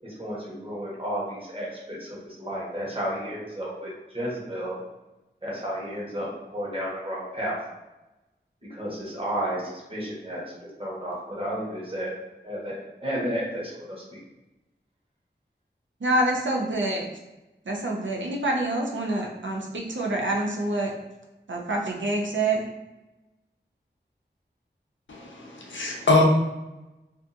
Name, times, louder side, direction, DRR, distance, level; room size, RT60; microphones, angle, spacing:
voice 1, 0.0-4.8 5.4-7.6 8.7-12.1 12.4-14.2, equal, 30° right, -6 dB, 1.0 m, -32 dB
voice 2, 16.0-17.1 17.7-20.9 21.5-22.7, right 2 dB, 85° right, 0 dB, 0.5 m, -26 dB
voice 3, 25.1-26.2, left 2 dB, 80° left, -1 dB, 0.5 m, -23 dB
2.6 x 2.3 x 2.5 m, 1.0 s
wide cardioid pair, 40°, 19 cm